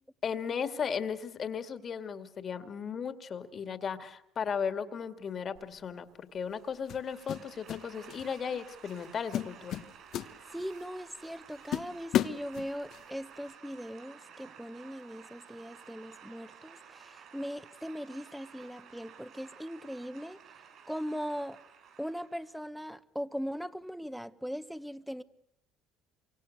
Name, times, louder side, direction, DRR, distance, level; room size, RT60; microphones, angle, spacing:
voice 1, 0.2-9.8, left 6 dB, 45° left, 2.2 m, -36 dB
sound 1, 5.6-5.8 6.9-7.8 8.1-8.4 8.9-9.0 9.3-10.8 11.3-11.4 11.7-13.0, left 11 dB, 60° left, 1.2 m, -33 dB
sound 2, 6.5-22.6, right 7 dB, 55° right, 7.2 m, -54 dB
voice 2, 10.5-20.4 20.9-21.6 22.0-25.2, equal, ahead, 1.2 m, -39 dB
27.5 x 25.0 x 6.7 m
supercardioid pair, 90°, 0 cm